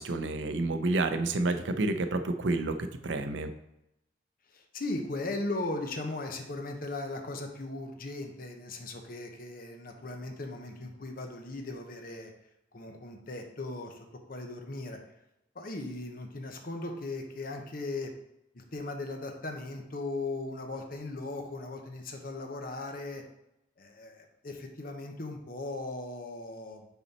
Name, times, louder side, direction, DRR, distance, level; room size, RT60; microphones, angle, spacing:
voice 1, 0.0-3.5, right 2 dB, 75° right, 8 dB, 0.6 m, -29 dB
voice 2, 4.5-12.3 12.7-15.0 15.5-18.1 18.5-23.2 23.8-26.9, left 2 dB, 50° left, 4 dB, 0.9 m, -38 dB
7.0 x 4.2 x 4.2 m, 0.86 s
head